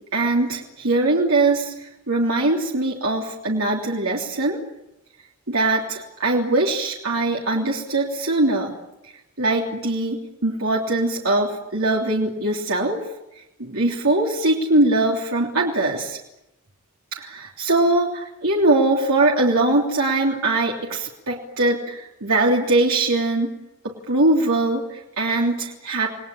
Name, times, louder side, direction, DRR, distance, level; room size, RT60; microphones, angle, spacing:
voice 1, 0.1-4.6 5.5-8.7 9.0-13.0 13.6-16.2 17.1-23.5 23.8-26.1, right 2 dB, 65° right, -2 dB, 3.4 m, -21 dB
29.0 x 20.5 x 8.7 m, 0.90 s
head